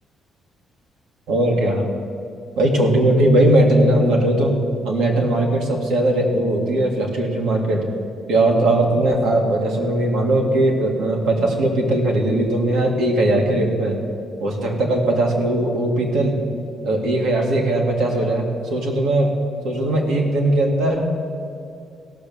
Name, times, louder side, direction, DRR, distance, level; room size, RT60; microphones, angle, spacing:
voice 1, 1.3-1.9 2.6-7.8 8.3-14.0 14.4-16.4 16.8-19.3 19.6-21.1, right 1 dB, 90° right, 0 dB, 2.0 m, -19 dB
16.0 x 6.3 x 7.1 m, 2.4 s
cardioid pair, 90°, 0 cm